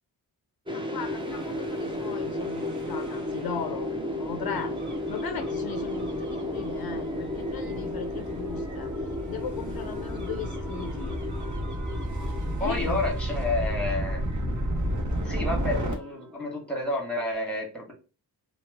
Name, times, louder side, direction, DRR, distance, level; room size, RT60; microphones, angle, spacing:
voice 1, 0.7-4.8 5.1-11.2 12.6-13.6, left 7 dB, 65° left, 0.5 m, -38 dB
sound 1, 0.7-16.8, left 1 dB, 15° right, 0.5 m, -34 dB
Gull seagull / Waves surf / Siren, 1.2-15.9, right 1 dB, 50° right, 0.9 m, -33 dB
voice 2, 12.6-14.2 15.2-17.9, left 2 dB, ahead, 1.2 m, -30 dB
2.9 x 2.1 x 3.3 m
wide cardioid pair, 95°, 39 cm